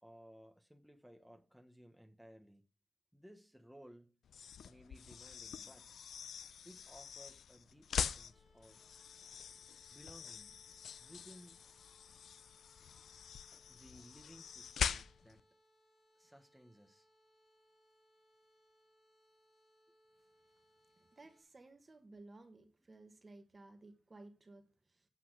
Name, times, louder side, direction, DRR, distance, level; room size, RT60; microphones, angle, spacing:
voice 1, 0.0-2.7 3.1-4.1 4.6-6.0 6.6-8.8 9.9-10.6 11.0-11.6 13.7-15.4 16.1-17.1, equal, ahead, 1.2 m, -59 dB
sound 1, 4.2-15.4, left 7 dB, 90° left, 0.4 m, -44 dB
sound 2, 8.3-21.4, equal, 40° left, 5.5 m, -72 dB
voice 2, 21.1-25.1, right 2 dB, 35° right, 1.6 m, -57 dB
8.5 x 5.8 x 6.2 m
cardioid pair, 80°, 0 cm